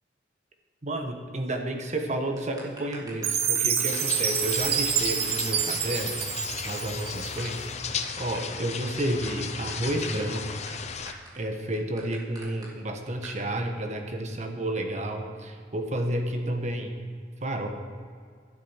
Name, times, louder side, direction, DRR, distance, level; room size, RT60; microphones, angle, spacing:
voice 1, 0.8-6.1 6.6-7.7 8.2-10.5 11.3-16.9 17.4-17.7, right 1 dB, 40° right, 4 dB, 1.2 m, -31 dB
sound 1, 2.4-4.1 4.4-4.5 4.9-5.0 5.2-5.3 5.5-5.6 5.8-6.4 6.7-6.8 7.2-12.7 13.2-13.4, right 2 dB, 20° right, 2.3 m, -45 dB
Chime, 3.2-7.5, right 8 dB, 60° right, 0.9 m, -27 dB
sound 2, 3.9-11.1, left 6 dB, 40° left, 0.6 m, -35 dB
12.0 x 7.5 x 5.7 m, 2.1 s
head